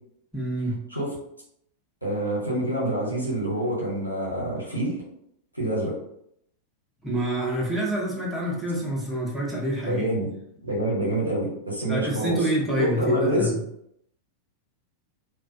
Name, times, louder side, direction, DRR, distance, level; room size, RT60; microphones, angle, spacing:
voice 1, 0.3-0.8 7.0-10.0 11.9-13.5, right 1 dB, 5° right, -4 dB, 0.7 m, -27 dB
voice 2, 2.0-5.0 5.5-6.0 9.8-10.3 10.6-12.4 12.8-13.5, right 1 dB, 90° right, -4 dB, 0.8 m, -26 dB
2.4 x 2.1 x 2.5 m, 0.74 s
figure-of-eight pair, 90°, 0 cm